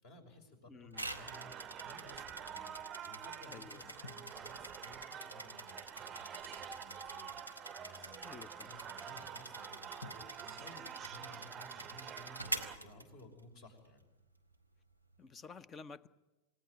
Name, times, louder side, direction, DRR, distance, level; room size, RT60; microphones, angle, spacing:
voice 1, 0.0-1.6 1.8-8.3 8.7-14.0, left 1 dB, 45° left, 6 dB, 5.9 m, -57 dB
voice 2, 0.7-1.1 3.5-3.8 8.2-8.7 15.2-16.1, left 5 dB, 20° left, 18 dB, 0.9 m, -52 dB
sound 1, 0.9-13.6, right 1 dB, 90° left, 2.2 m, -47 dB
sound 2, 0.9-12.8, right 9 dB, 25° right, 0.7 m, -48 dB
sound 3, 4.0-6.6 10.0-12.6 12.9-13.0, left 3 dB, 70° left, 1.5 m, -59 dB
28.5 x 18.0 x 9.0 m, 1.1 s
figure-of-eight pair, 90°, 0 cm